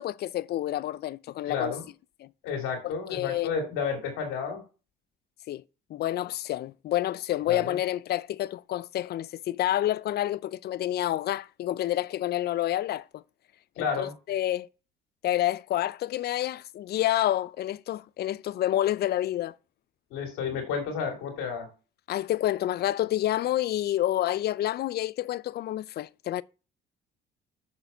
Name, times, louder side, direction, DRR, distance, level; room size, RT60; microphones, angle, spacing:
voice 1, 0.0-1.7 2.2-2.3 2.8-3.5 5.5-5.6 5.9-13.2 13.8-14.7 15.2-19.5 22.1-26.4, left 13 dB, 50° left, 0.4 m, -28 dB
voice 2, 1.5-1.8 2.4-4.6 7.5-7.8 13.8-14.1 20.1-21.7, left 6 dB, 80° left, 2.7 m, -31 dB
6.4 x 4.5 x 5.5 m
supercardioid pair, 75°, 21 cm